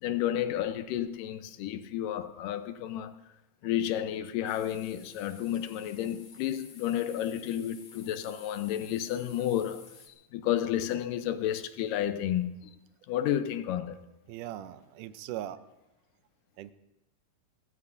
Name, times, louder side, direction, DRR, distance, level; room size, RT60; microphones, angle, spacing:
voice 1, 0.0-3.2 3.6-9.8 10.3-12.6 13.1-14.0, left 11 dB, 80° left, 2.4 m, -31 dB
sound 1, 4.4-10.1, left 5 dB, 55° left, 3.1 m, -53 dB
voice 2, 14.3-15.6 16.6-16.7, right 12 dB, 80° right, 2.2 m, -39 dB
30.0 x 15.5 x 2.7 m
omnidirectional pair, 3.8 m